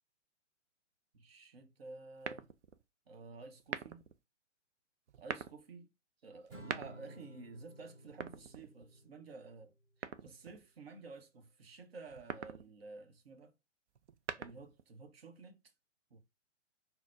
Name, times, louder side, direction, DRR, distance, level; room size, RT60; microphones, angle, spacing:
voice 1, 1.1-2.5 3.1-4.0 5.2-5.9 6.2-9.7 10.0-13.5 14.4-15.6 16.1-16.2, right 3 dB, 50° right, 0.8 m, -52 dB
sound 1, 2.2-2.8 3.6-4.2 5.1-5.6 6.5-7.2 8.1-9.0 10.0-10.6 12.1-12.7 14.0-14.8, right 7 dB, 65° right, 0.5 m, -43 dB
Acoustic guitar / Strum, 6.5-9.8, right 1 dB, 10° right, 0.5 m, -54 dB
3.9 x 2.1 x 2.4 m
figure-of-eight pair, 120°, 37 cm